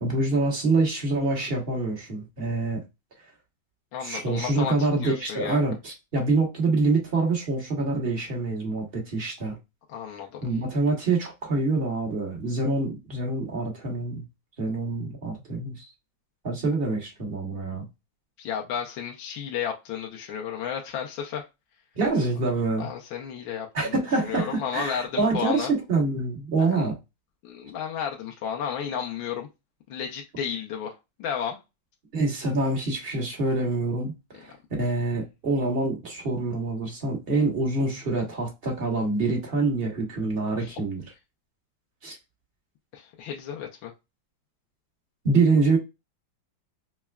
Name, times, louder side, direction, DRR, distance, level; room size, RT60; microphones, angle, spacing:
voice 1, 0.0-2.8 4.0-9.6 10.4-14.2 14.6-15.9 16.4-17.9 21.9-22.9 23.7-27.0 32.1-41.0 42.0-42.2 45.2-45.8, right 3 dB, 35° right, 1.4 m, -26 dB
voice 2, 3.9-5.6 9.9-10.4 18.4-21.4 22.8-23.9 24.3-25.7 26.6-26.8 27.4-29.5 29.9-31.6 40.6-40.8 42.9-43.9, left 8 dB, 85° left, 1.5 m, -33 dB
5.6 x 2.1 x 2.3 m
omnidirectional pair, 2.0 m